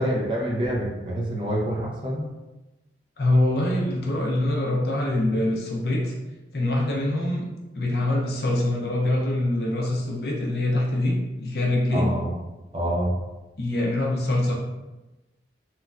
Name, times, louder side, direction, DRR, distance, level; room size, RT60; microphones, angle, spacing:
voice 1, 0.0-2.3 11.9-12.3 12.7-13.2, equal, 30° right, -4 dB, 0.5 m, -26 dB
voice 2, 3.2-6.1 6.5-7.4 7.7-12.1 13.6-14.5, left 1 dB, 60° left, -2 dB, 0.6 m, -24 dB
3.1 x 2.2 x 2.4 m, 1.1 s
head